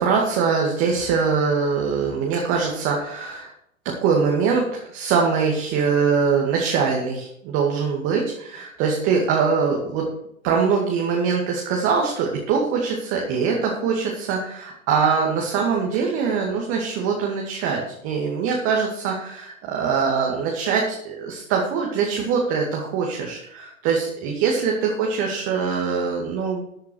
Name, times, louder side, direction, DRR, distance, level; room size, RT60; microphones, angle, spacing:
voice 1, 0.0-3.5 4.0-10.1 10.4-26.6, right 5 dB, 30° right, 0 dB, 2.3 m, -23 dB
13.5 x 8.3 x 4.7 m, 0.73 s
figure-of-eight pair, 110°, 41 cm